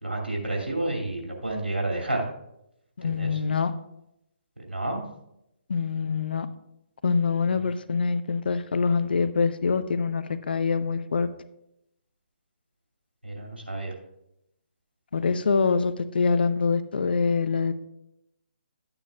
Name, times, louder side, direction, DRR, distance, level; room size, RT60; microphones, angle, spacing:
voice 1, 0.0-2.3 3.0-3.4 4.7-5.0 7.5-7.6 13.2-13.9, right 2 dB, 90° right, 0 dB, 2.5 m, -30 dB
voice 2, 3.0-3.7 5.7-6.5 7.0-11.3 15.1-17.8, left 5 dB, 65° left, 12 dB, 0.7 m, -25 dB
12.0 x 8.9 x 2.4 m, 0.83 s
figure-of-eight pair, 140°, 6 cm